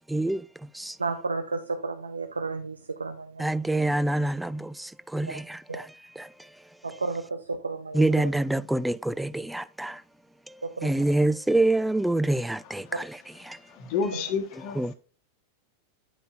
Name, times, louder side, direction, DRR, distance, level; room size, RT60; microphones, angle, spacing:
voice 1, 1.0-3.5 5.3-5.4 5.7-5.8 6.8-8.3 10.6-11.1 14.1-14.2, right 3 dB, 75° right, 0.5 m, -33 dB
voice 2, 3.4-4.6 5.1-5.3 7.9-9.9 10.8-13.0 14.8-14.9, right 2 dB, 5° right, 0.3 m, -25 dB
voice 3, 13.7-14.9, left 5 dB, 45° left, 1.1 m, -30 dB
10.0 x 5.4 x 2.5 m
figure-of-eight pair, 90°, 0 cm